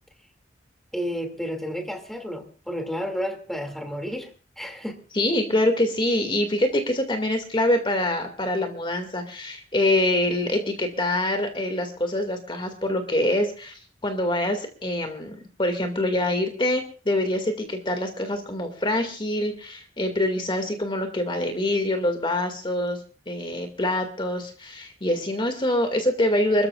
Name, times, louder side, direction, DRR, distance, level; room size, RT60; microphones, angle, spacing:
voice 1, 0.9-4.3 4.6-5.0, equal, ahead, 4 dB, 2.4 m, -31 dB
voice 2, 5.1-23.0 23.3-26.7, left 1 dB, 30° left, 5 dB, 2.2 m, -25 dB
30.0 x 14.0 x 2.4 m, 0.38 s
head